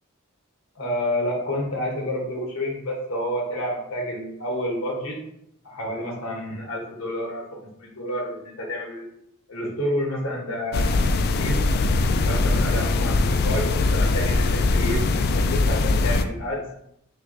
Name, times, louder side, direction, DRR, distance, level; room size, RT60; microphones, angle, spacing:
voice 1, 0.7-5.2 5.6-7.4 7.8-9.0 9.5-10.9 11.2-11.6 12.1-15.0 15.3-16.6, left 1 dB, 80° left, -1 dB, 1.3 m, -29 dB
sound 1, 10.7-16.3, left 3 dB, 50° left, 0.3 m, -21 dB
5.8 x 2.9 x 2.7 m, 0.75 s
head